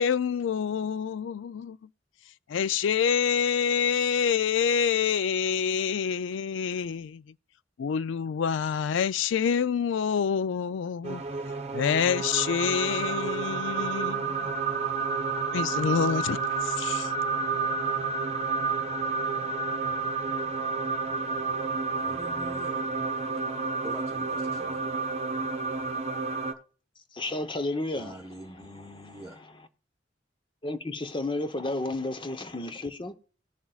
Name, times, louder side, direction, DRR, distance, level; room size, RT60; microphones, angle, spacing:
voice 1, 0.0-1.9 2.3-7.3 7.8-11.2 11.7-14.5 15.5-17.1, left 7 dB, 75° left, 0.4 m, -27 dB
sound 1, 11.0-26.5, right 4 dB, 35° right, 1.0 m, -30 dB
voice 2, 22.0-22.8 23.3-23.4 23.8-24.8 27.9-29.4, right 1 dB, 15° right, 1.2 m, -44 dB
voice 3, 27.1-28.2 30.6-33.1, left 2 dB, 25° left, 0.8 m, -32 dB
19.0 x 7.1 x 2.4 m
head